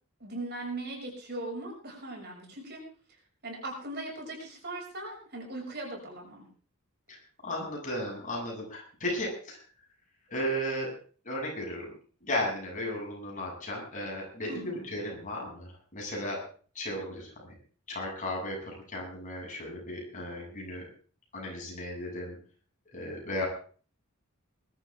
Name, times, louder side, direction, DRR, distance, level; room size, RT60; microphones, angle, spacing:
voice 1, 0.2-2.8 3.4-6.5 14.5-14.9, right 2 dB, 50° right, 0 dB, 6.7 m, -39 dB
voice 2, 7.4-9.6 10.3-10.9 11.2-11.8 12.2-16.4 16.7-17.5 17.9-20.8 21.3-22.4 22.9-23.5, left 1 dB, 35° left, -2 dB, 8.0 m, -35 dB
21.0 x 13.5 x 3.7 m, 0.41 s
head